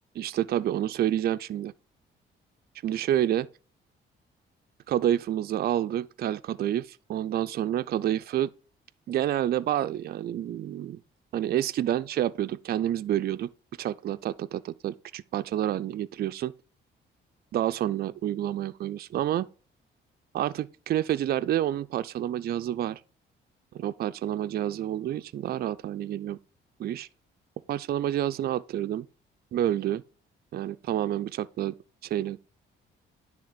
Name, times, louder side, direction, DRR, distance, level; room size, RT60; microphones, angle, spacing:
voice 1, 0.1-1.7 2.8-3.5 4.9-8.5 9.1-11.0 11.3-13.5 13.8-16.5 17.5-19.5 20.3-23.0 23.7-26.4 26.8-27.1 27.7-29.1 29.5-30.0 30.5-31.7 32.0-32.4, right 11 dB, 50° right, 0.4 m, -28 dB
10.0 x 3.4 x 6.5 m
cardioid pair, 90°, 20 cm